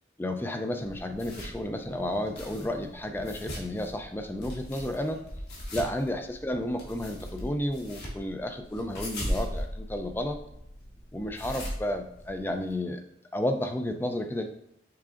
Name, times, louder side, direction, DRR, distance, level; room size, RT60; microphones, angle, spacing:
voice 1, 0.2-5.2 5.7-10.4 11.1-13.0 13.3-14.4, left 1 dB, 10° left, 6 dB, 0.3 m, -32 dB
sound 1, 0.8-12.7, equal, 60° left, 1.3 m, -39 dB
5.8 x 3.7 x 2.5 m, 0.77 s
head